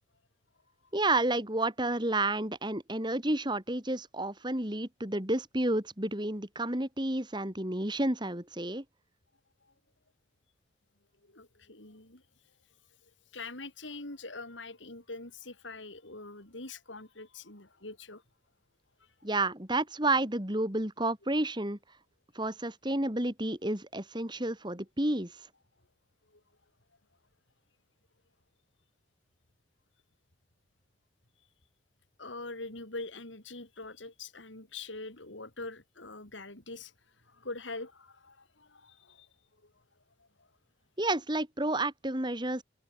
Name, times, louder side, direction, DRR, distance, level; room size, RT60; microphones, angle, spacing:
voice 1, 0.9-8.8 19.2-21.8 22.3-25.3 41.0-42.6, right 2 dB, 25° right, 3.0 m, -30 dB
voice 2, 11.2-12.2 13.3-18.2 32.2-36.9 37.3-39.3 39.6-39.7 40.4-40.5, left 3 dB, 80° left, 4.8 m, -44 dB
head